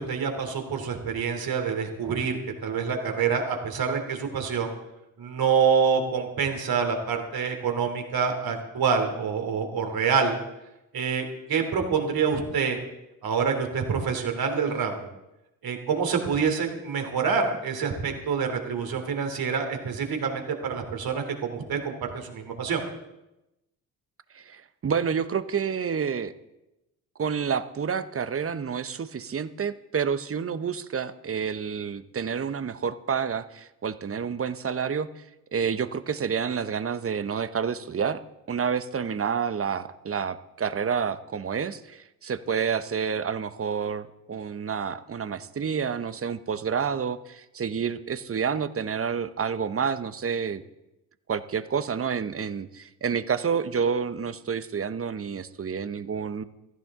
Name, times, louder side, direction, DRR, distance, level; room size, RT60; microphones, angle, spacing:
voice 1, 0.0-4.7 5.2-10.4 10.9-12.8 13.2-15.1 15.6-22.8, right 6 dB, 55° right, 4 dB, 3.2 m, -26 dB
voice 2, 24.3-26.3 27.2-35.2 35.5-38.2 38.5-50.6 51.3-56.4, right 6 dB, 30° right, 13 dB, 1.0 m, -29 dB
16.0 x 14.5 x 3.8 m, 0.93 s
hypercardioid pair, 50°, 42 cm